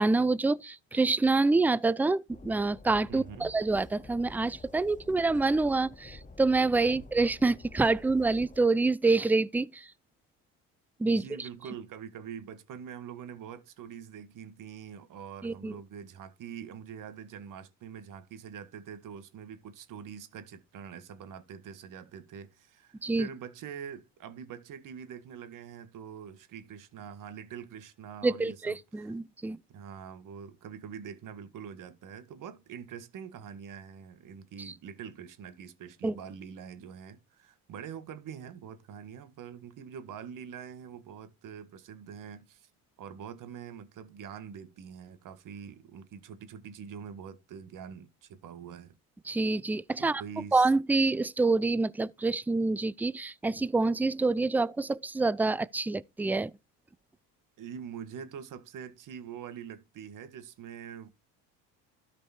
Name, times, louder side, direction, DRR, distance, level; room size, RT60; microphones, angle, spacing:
voice 1, 0.0-9.9 11.0-11.5 15.4-15.8 23.0-23.3 28.2-29.6 34.6-34.7 36.0-36.2 49.3-50.2 50.5-56.5, right 3 dB, 5° right, 0.4 m, -27 dB
Train, 2.3-8.6, left 2 dB, 20° left, 1.3 m, -50 dB
voice 2, 3.1-3.6 5.1-5.2 6.9-7.0 11.1-29.1 29.7-42.7 43.0-49.0 50.0-50.7 57.6-61.1, right 7 dB, 60° right, 1.8 m, -44 dB
12.5 x 5.2 x 4.4 m
supercardioid pair, 90°, 37 cm